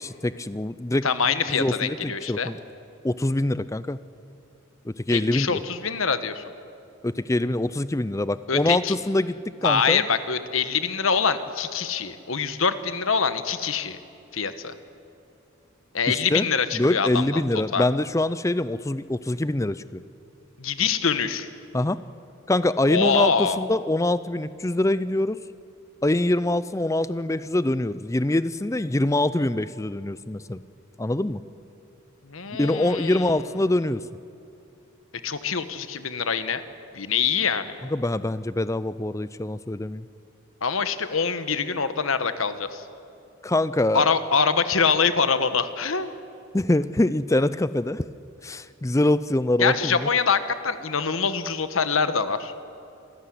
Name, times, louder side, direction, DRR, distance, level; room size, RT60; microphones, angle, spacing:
voice 1, 0.0-1.1 1.5-2.6 3.0-4.0 4.9-5.6 7.0-9.3 9.6-10.0 16.1-16.5 16.7-20.0 21.7-22.0 22.5-25.4 26.0-30.6 31.0-31.4 32.6-34.0 37.9-40.1 43.4-44.1 46.5-48.1 48.4-50.1, left 1 dB, 15° left, 15 dB, 0.5 m, -24 dB
voice 2, 1.0-2.5 5.1-6.4 8.5-9.0 9.6-14.0 14.3-14.7 15.9-17.4 17.7-17.8 20.6-21.5 22.9-23.6 32.3-33.4 35.2-36.6 36.9-37.7 40.6-42.8 43.9-46.1 49.6-52.5, left 5 dB, 80° left, 11 dB, 1.3 m, -24 dB
26.5 x 14.0 x 10.0 m, 2.7 s
head